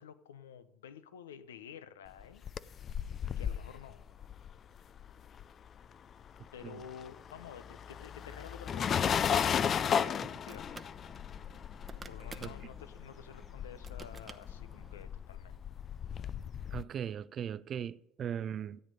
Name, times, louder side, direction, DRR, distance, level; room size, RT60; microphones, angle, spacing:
voice 1, 0.0-2.4 3.4-4.1 6.5-9.4 9.9-10.7 12.1-15.6, left 8 dB, 85° left, 0.7 m, -50 dB
sound 1, 2.2-5.8 6.1-16.8, left 8 dB, 45° left, 0.4 m, -35 dB
sound 2, 9.5-15.0, right 4 dB, 30° right, 0.9 m, -54 dB
voice 2, 16.7-18.8, right 9 dB, 45° right, 0.5 m, -38 dB
13.5 x 9.1 x 5.3 m
hypercardioid pair, 65°, 0 cm